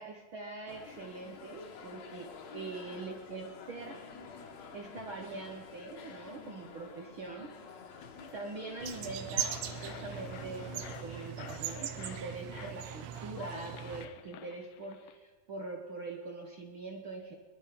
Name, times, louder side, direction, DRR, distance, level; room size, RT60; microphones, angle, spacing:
voice 1, 0.0-4.0 4.7-7.5 8.3-17.3, right 3 dB, 70° right, 2 dB, 1.2 m, -43 dB
sound 1, 0.7-11.1, left 5 dB, 60° left, 2.2 m, -49 dB
sound 2, 8.8-14.1, right 9 dB, 90° right, 2.7 m, -40 dB
sound 3, 9.0-15.2, left 10 dB, 75° left, 2.2 m, -50 dB
22.5 x 11.0 x 5.1 m, 1.4 s
omnidirectional pair, 4.0 m